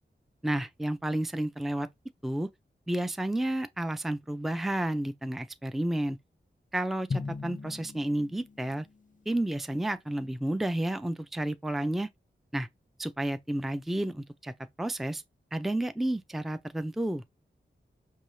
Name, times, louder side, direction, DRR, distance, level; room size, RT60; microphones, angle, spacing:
voice 1, 0.4-1.9 2.2-2.5 2.9-6.2 6.7-8.9 9.3-12.1 12.5-12.7 13.0-14.5 14.8-15.2 15.5-17.2, right 1 dB, ahead, 0.5 m, -31 dB
Drum, 7.1-9.3, left 4 dB, 40° left, 0.6 m, -38 dB
5.4 x 2.8 x 3.1 m
cardioid pair, 50°, 20 cm